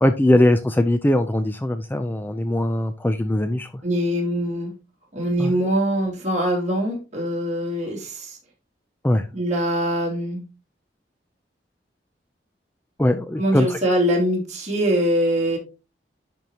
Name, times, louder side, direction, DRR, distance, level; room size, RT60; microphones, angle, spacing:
voice 1, 0.0-3.7 5.4-5.5 9.0-9.2 13.0-13.8, left 1 dB, 10° left, 9 dB, 0.4 m, -20 dB
voice 2, 3.8-4.7 5.1-8.4 9.3-10.4 13.4-15.6, equal, 40° right, -2 dB, 2.7 m, -23 dB
10.5 x 4.7 x 2.9 m, 0.30 s
head